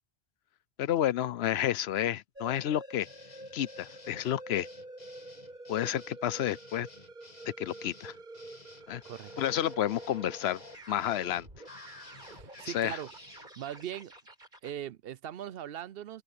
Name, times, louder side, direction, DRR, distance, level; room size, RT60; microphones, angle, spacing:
voice 1, 0.8-3.1 3.5-4.7 5.7-6.9 7.6-8.1 8.9-9.0 9.4-10.6 10.9-11.5 12.7-13.0, left 11 dB, 90° left, 0.9 m, -30 dB
sound 1, 2.4-14.8, right 1 dB, 50° right, 5.0 m, -48 dB
sound 2, 3.0-13.5, left 3 dB, 40° left, 2.2 m, -55 dB
voice 2, 12.2-13.1 13.6-14.1 14.6-16.2, right 10 dB, 70° right, 0.8 m, -40 dB
open air
omnidirectional pair, 1.0 m